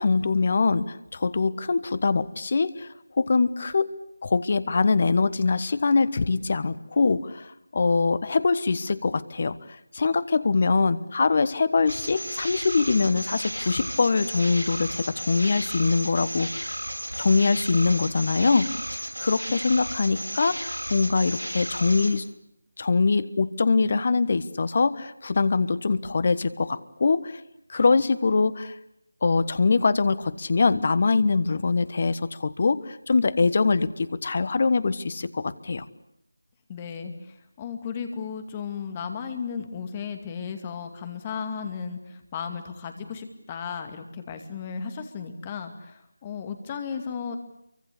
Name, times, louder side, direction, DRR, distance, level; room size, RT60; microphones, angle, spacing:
voice 1, 0.0-2.9 3.2-3.9 4.2-9.6 9.9-16.5 17.2-22.2 22.8-27.4 27.7-28.7 29.2-35.8, left 4 dB, 35° left, 17 dB, 1.3 m, -23 dB
sound 1, 11.9-22.2, equal, 75° right, 7.7 m, -34 dB
voice 2, 36.7-47.4, left 6 dB, 20° left, 7 dB, 2.4 m, -35 dB
28.5 x 24.0 x 8.5 m, 0.81 s
figure-of-eight pair, 165°, 0 cm